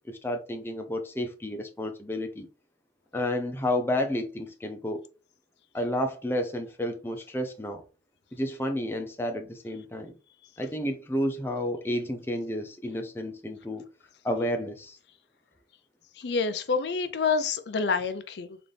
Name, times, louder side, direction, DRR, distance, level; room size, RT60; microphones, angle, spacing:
voice 1, 0.1-2.5 3.1-5.1 5.7-7.8 8.3-10.1 10.6-13.8 14.2-15.0, left 1 dB, 15° left, 0.5 m, -31 dB
voice 2, 16.2-18.6, left 5 dB, 75° left, 0.4 m, -28 dB
3.9 x 2.6 x 3.3 m
head